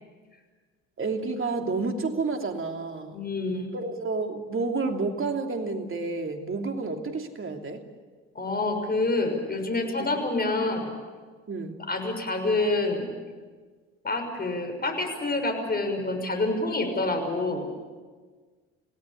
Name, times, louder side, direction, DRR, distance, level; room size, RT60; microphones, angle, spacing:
voice 1, 1.0-3.1 3.7-7.8 11.5-11.8, right 3 dB, 35° right, 4 dB, 3.2 m, -30 dB
voice 2, 3.1-3.7 8.3-10.9 11.9-13.1 14.0-17.7, left 2 dB, 25° left, 5 dB, 6.3 m, -27 dB
27.5 x 17.5 x 8.6 m, 1.5 s
hypercardioid pair, 60°, 35 cm